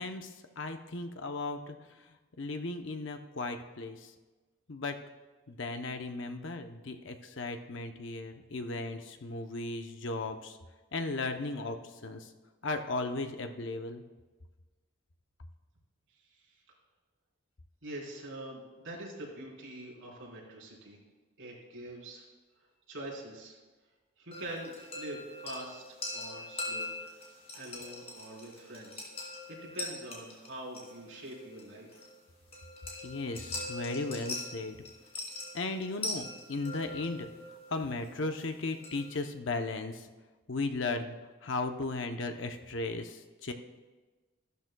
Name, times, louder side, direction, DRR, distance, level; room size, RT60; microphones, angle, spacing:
voice 1, 0.0-1.8 2.4-4.1 4.7-5.0 5.5-10.6 10.9-11.8 12.0-12.3 12.6-14.0 33.0-34.8 35.5-37.3 37.7-40.1 40.5-41.1 41.4-43.5, left 3 dB, 60° left, 6 dB, 0.7 m, -36 dB
voice 2, 17.8-21.0 21.4-22.2 22.9-23.6 24.2-26.9 27.5-31.9, right 1 dB, 70° right, -4 dB, 3.8 m, -44 dB
sound 1, 24.3-39.2, left 2 dB, 30° left, 2.7 m, -42 dB
15.0 x 12.5 x 2.3 m, 1.2 s
head